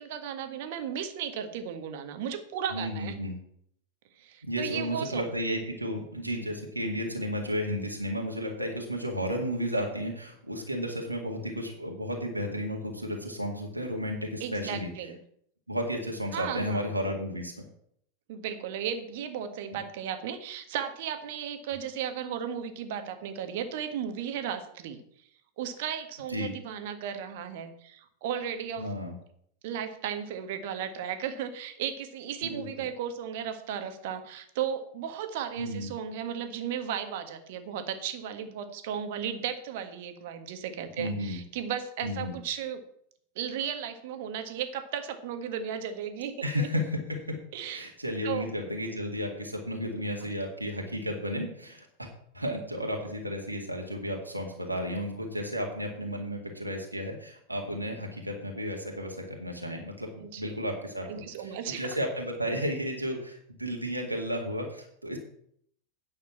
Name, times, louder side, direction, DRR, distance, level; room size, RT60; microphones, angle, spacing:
voice 1, 0.0-3.2 4.2-5.3 14.4-15.2 16.3-16.9 18.3-25.0 25.6-28.9 29.6-42.8 43.3-46.7 47.5-47.9 48.2-48.5 49.9-50.0 60.2-60.6 61.0-62.0, right 8 dB, 50° right, 8 dB, 1.4 m, -35 dB
voice 2, 2.7-3.4 4.4-14.9 15.7-17.5 19.7-19.8 26.3-26.5 28.8-29.2 32.4-32.6 35.6-35.9 41.0-41.4 42.0-42.4 46.4-47.3 47.7-52.1 52.3-60.1 60.4-65.2, equal, 85° right, 0 dB, 2.0 m, -33 dB
9.6 x 6.6 x 7.2 m, 0.68 s
figure-of-eight pair, 90°, 0 cm